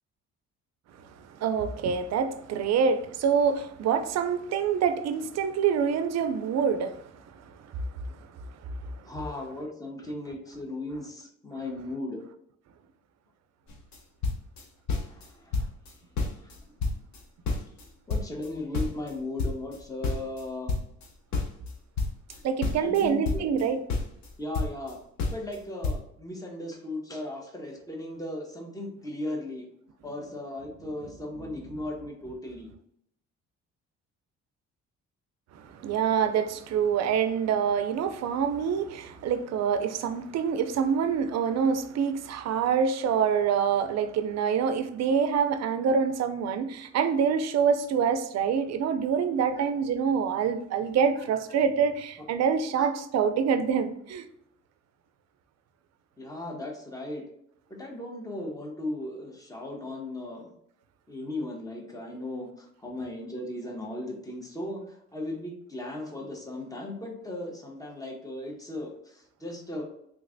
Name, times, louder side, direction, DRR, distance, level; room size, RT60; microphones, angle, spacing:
voice 1, 1.2-7.0 22.4-23.8 35.5-54.2, right 7 dB, 60° right, 10 dB, 0.5 m, -26 dB
voice 2, 9.0-12.2 15.0-15.7 16.4-16.6 18.1-20.8 22.8-23.4 24.4-25.0 25.3-29.7 30.0-32.7 49.5-49.7 51.2-51.6 52.8-52.9 56.2-57.2 57.7-60.5 61.1-69.8, left 1 dB, 10° left, 1 dB, 1.0 m, -37 dB
sound 1, 13.7-14.0 14.2-15.3 15.5-15.9 16.2-17.8 18.1-21.1 21.3-23.6 23.9-24.9 25.2-25.6 25.8-26.0, left 3 dB, 70° left, 0.8 m, -30 dB
3.4 x 3.1 x 2.6 m, 0.73 s
cardioid pair, 90°, 30 cm